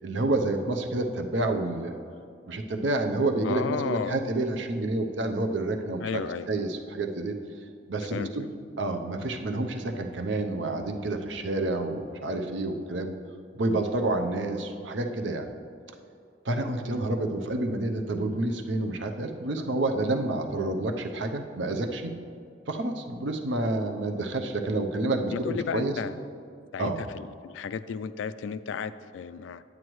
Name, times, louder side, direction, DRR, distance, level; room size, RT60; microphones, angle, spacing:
voice 1, 0.0-1.9 2.5-7.4 7.9-8.5 8.8-13.2 13.6-15.5 16.5-22.1 22.7-26.0 26.8-27.0, right 2 dB, 80° right, 5 dB, 0.7 m, -29 dB
voice 2, 3.4-4.2 6.0-6.5 8.1-8.3 25.3-26.2 26.7-29.6, left 6 dB, 85° left, 14 dB, 0.3 m, -33 dB
9.3 x 8.9 x 3.1 m, 2.3 s
head